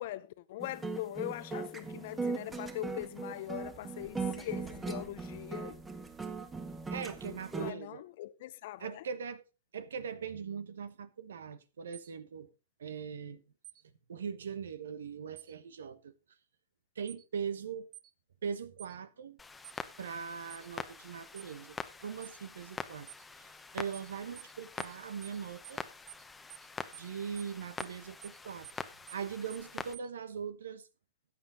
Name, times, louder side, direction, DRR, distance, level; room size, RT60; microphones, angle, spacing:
voice 1, 0.0-5.8 7.5-9.0, left 14 dB, 55° left, 0.6 m, -41 dB
sound 1, 0.6-7.7, right 4 dB, 15° right, 1.6 m, -39 dB
voice 2, 6.9-8.0 8.8-9.4 9.7-12.5 12.8-13.4 14.1-16.1 16.9-17.9 18.4-19.4 20.0-23.1 23.4-25.8 26.9-28.7 29.1-30.9, right 6 dB, 75° right, 1.1 m, -41 dB
sound 2, 11.9-12.1 13.6-13.8 15.4-15.5 17.1-17.2 17.9-18.1 18.8-19.0 19.6-19.8 20.5-20.7 21.4-21.5 22.2-22.4 23.1-23.2 23.9-24.1 24.4-24.5 24.8-25.0 25.2-25.4 25.6-25.8 26.1-26.2 26.5-26.7 26.9-27.1 27.4-27.5 27.8-28.0 28.2-28.4 28.6-28.8 29.1-29.2 29.5-29.7 29.9-30.1, right 14 dB, 40° right, 1.6 m, -50 dB
Clock, 19.4-29.9, left 4 dB, 10° left, 1.0 m, -45 dB
13.5 x 8.7 x 3.8 m
hypercardioid pair, 110°, 0 cm